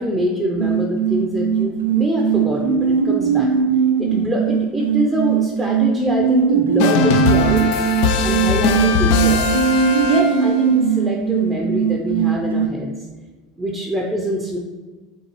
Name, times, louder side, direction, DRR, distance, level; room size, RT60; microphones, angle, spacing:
voice 1, 0.0-3.5 4.0-7.9 8.2-9.5 10.0-13.1 13.6-14.6, equal, 15° right, 0 dB, 0.5 m, -24 dB
sound 1, 0.6-12.7, right 7 dB, 80° right, 0.3 m, -19 dB
sound 2, 6.8-10.7, left 6 dB, 60° left, 0.3 m, -20 dB
3.8 x 3.8 x 3.0 m, 1.3 s
figure-of-eight pair, 75°, 0 cm